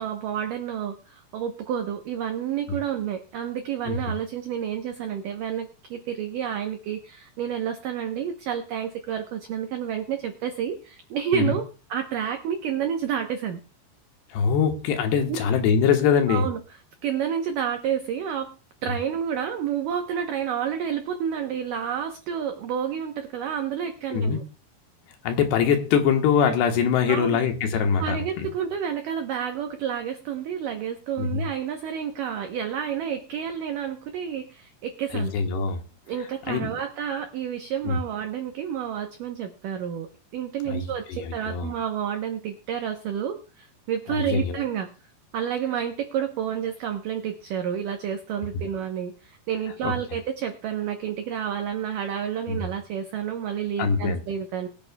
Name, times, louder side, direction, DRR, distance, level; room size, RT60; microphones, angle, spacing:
voice 1, 0.0-13.6 15.3-15.4 16.3-16.6 17.0-18.5 18.8-24.4 27.1-27.4 28.0-35.3 36.1-44.9 45.3-54.7, right 8 dB, 85° right, 1.9 m, -30 dB
voice 2, 14.3-16.5 24.1-24.4 25.2-28.2 31.2-31.4 35.1-35.8 36.5-36.7 37.8-38.0 40.7-41.7 44.1-44.6 49.8-49.9 52.5-52.6 53.8-54.2, left 6 dB, 70° left, 3.1 m, -23 dB
23.0 x 8.3 x 2.2 m
omnidirectional pair, 5.2 m